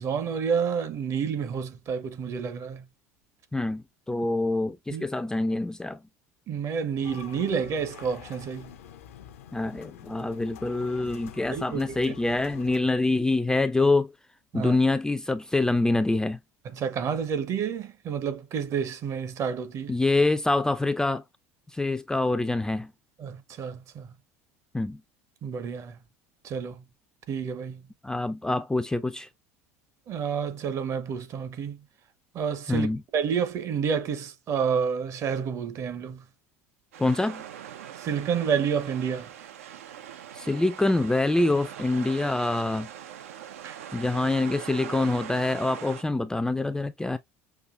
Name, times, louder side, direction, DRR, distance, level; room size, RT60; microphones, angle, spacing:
voice 1, 0.0-2.9 4.9-5.1 6.5-8.7 11.5-11.8 14.5-14.7 16.6-19.9 23.2-24.1 25.4-26.0 26.4-26.8 27.3-27.8 30.1-31.8 32.3-32.9 33.1-36.2 37.9-39.3 43.6-43.8, right 7 dB, 45° right, 0.9 m, -29 dB
voice 2, 3.5-6.0 9.5-14.1 14.5-16.4 19.9-21.2 21.7-22.9 24.7-25.0 28.0-29.3 32.7-33.0 37.0-37.4 40.3-42.9 43.9-47.2, left 2 dB, 10° left, 0.4 m, -25 dB
sound 1, 7.0-12.8, left 10 dB, 70° left, 0.6 m, -46 dB
sound 2, 36.9-46.0, right 9 dB, 75° right, 0.6 m, -42 dB
5.9 x 2.6 x 2.4 m
figure-of-eight pair, 70°, 8 cm